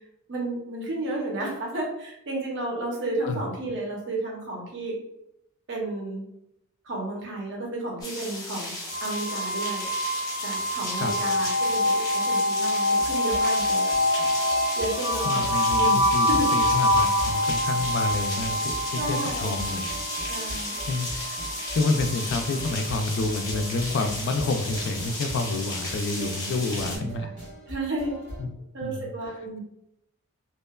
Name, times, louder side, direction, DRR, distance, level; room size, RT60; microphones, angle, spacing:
voice 1, 0.3-4.9 5.7-6.2 6.8-8.7 9.0-9.8 10.4-14.0 14.8-15.4 15.7-16.5 19.0-19.9 20.3-20.8 26.7-27.3 27.7-28.2 28.7-29.6, right 2 dB, 60° right, -1 dB, 0.7 m, -32 dB
sound 1, 8.0-27.0, left 2 dB, 15° left, 0.7 m, -34 dB
sound 2, 8.9-23.8, left 1 dB, 20° right, 0.6 m, -26 dB
sound 3, 12.9-28.4, right 1 dB, 85° right, 1.3 m, -41 dB
voice 2, 15.2-19.8 20.5-21.4 21.7-27.3 28.4-28.5 28.8-29.1, left 3 dB, 55° left, 7 dB, 0.3 m, -29 dB
2.9 x 2.1 x 2.2 m, 0.81 s
head